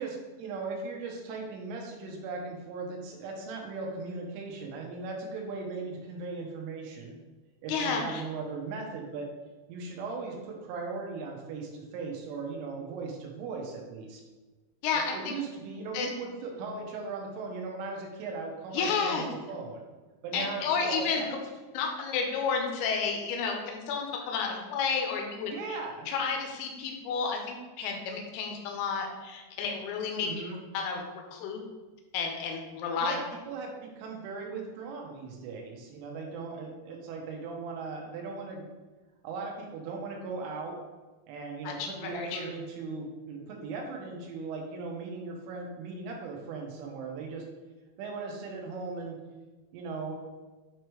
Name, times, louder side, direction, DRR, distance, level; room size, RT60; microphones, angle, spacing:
voice 1, 0.0-7.2 7.6-9.3 9.7-14.2 14.9-19.9 20.2-21.3 25.5-26.1 30.2-30.6 33.0-38.7 39.2-40.8 41.3-47.4 48.0-49.2 49.7-50.2, right 4 dB, 85° right, 0 dB, 3.6 m, -38 dB
voice 2, 7.7-8.2 14.8-15.3 15.9-16.1 18.7-19.3 20.3-21.3 21.7-25.8 26.1-30.3 30.7-31.0 31.3-31.6 32.1-33.2 41.6-42.5, left 5 dB, 85° left, 2 dB, 2.3 m, -31 dB
8.6 x 3.1 x 4.9 m, 1.3 s
omnidirectional pair, 5.6 m